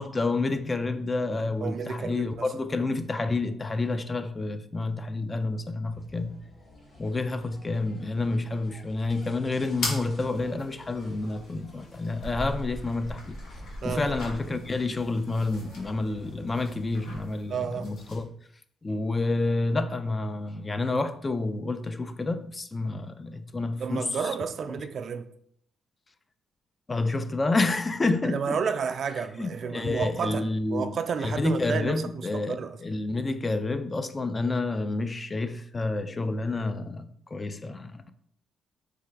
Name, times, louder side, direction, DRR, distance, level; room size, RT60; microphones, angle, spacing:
voice 1, 0.0-6.4 7.0-13.4 13.8-18.3 18.8-24.1 26.9-28.6 29.4-38.1, left 2 dB, 25° left, 0.4 m, -29 dB
voice 2, 1.6-2.9 13.8-14.1 17.5-17.9 23.8-25.3 28.2-32.8, right 6 dB, 55° right, 0.3 m, -31 dB
sound 1, 5.9-17.3, left 2 dB, 55° left, 1.7 m, -52 dB
sound 2, 9.7-18.2, left 1 dB, 85° left, 1.2 m, -40 dB
3.7 x 3.4 x 3.2 m
cardioid pair, 90°, 0 cm